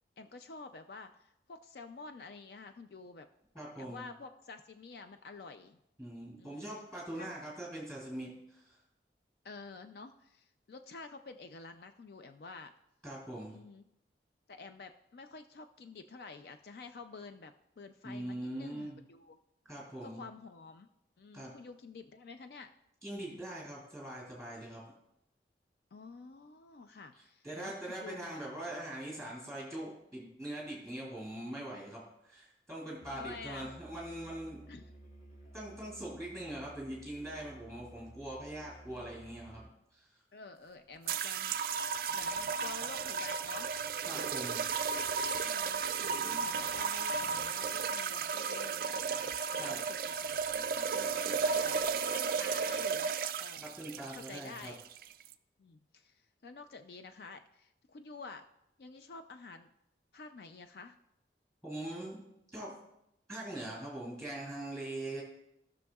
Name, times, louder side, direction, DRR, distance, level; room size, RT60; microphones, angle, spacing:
voice 1, 0.2-3.3 3.8-5.8 6.4-6.7 7.1-7.3 9.4-12.7 13.5-13.9 14.5-19.4 20.0-20.9 21.2-22.7 25.9-28.4 28.7-28.9 33.1-33.7 34.7-34.9 40.3-41.6 42.1-43.7 45.3-51.8 52.1-53.7 54.1-54.9 55.6-58.4 58.8-59.7 60.1-61.0, left 4 dB, 60° left, 8 dB, 0.4 m, -49 dB
voice 2, 3.5-4.0 6.0-8.7 13.0-13.6 18.0-19.0 19.7-20.2 21.3-21.5 23.0-24.8 27.4-34.6 35.5-40.1 44.1-44.6 49.6-49.8 53.6-54.7 61.6-62.2 62.5-62.7 63.3-65.2, right 1 dB, 5° left, -4 dB, 2.9 m, -42 dB
Musical instrument, 33.0-39.9, right 1 dB, 40° left, 1.0 m, -54 dB
sound 1, 41.1-55.3, right 6 dB, 55° right, 0.3 m, -34 dB
16.5 x 6.2 x 2.3 m, 0.83 s
head